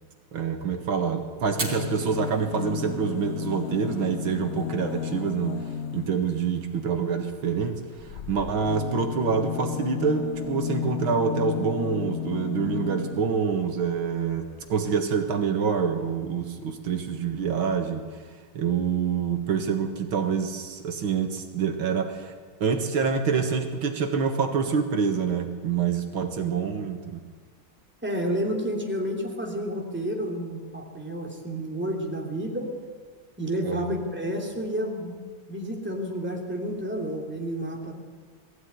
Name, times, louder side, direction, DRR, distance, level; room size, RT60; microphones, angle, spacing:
voice 1, 0.3-5.6 5.9-7.8 8.1-18.0 18.6-22.3 22.6-27.2 33.6-33.9, right 6 dB, 80° right, 5 dB, 2.4 m, -26 dB
sound 1, 1.4-6.3 8.0-13.4 14.4-14.5 14.7-14.8, left 10 dB, 65° left, 0.6 m, -33 dB
Fire, 1.5-10.7, right 3 dB, 55° right, 4.5 m, -44 dB
voice 2, 28.0-32.7 33.4-35.2 35.5-37.9, equal, 5° right, 0 dB, 2.8 m, -30 dB
20.0 x 15.0 x 9.6 m, 1.5 s
omnidirectional pair, 2.2 m